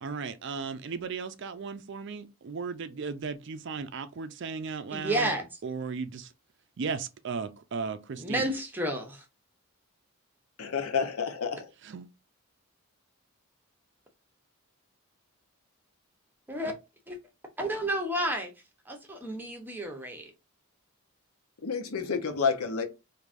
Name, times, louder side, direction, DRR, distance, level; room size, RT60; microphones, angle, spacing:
voice 1, 0.0-5.3 5.6-6.3 6.8-8.5 11.9-12.1, right 5 dB, 55° right, 0.4 m, -36 dB
voice 2, 4.9-5.5 8.2-9.2 16.5-16.7 17.1-17.2 17.6-18.5 18.9-20.3, right 1 dB, 10° right, 0.7 m, -31 dB
voice 3, 10.6-11.7 21.6-22.8, left 5 dB, 80° left, 0.8 m, -29 dB
4.6 x 2.6 x 2.5 m
head